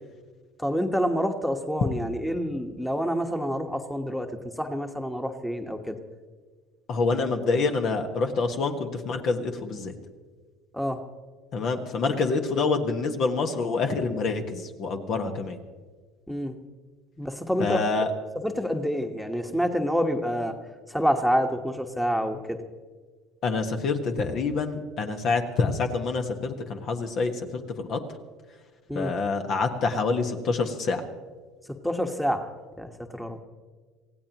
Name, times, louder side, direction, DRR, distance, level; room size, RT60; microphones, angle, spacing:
voice 1, 0.6-4.3 4.6-6.0 10.7-11.0 16.3-16.6 17.2-17.8 18.3-20.5 20.9-22.6 28.9-29.1 31.8-32.5 32.8-33.4, equal, 5° left, 5 dB, 1.4 m, -27 dB
voice 2, 6.9-10.0 11.5-15.6 17.6-18.1 23.4-28.0 28.9-31.0, left 4 dB, 50° left, 5 dB, 1.5 m, -27 dB
26.0 x 16.5 x 3.0 m, 1.5 s
hypercardioid pair, 70°, 0 cm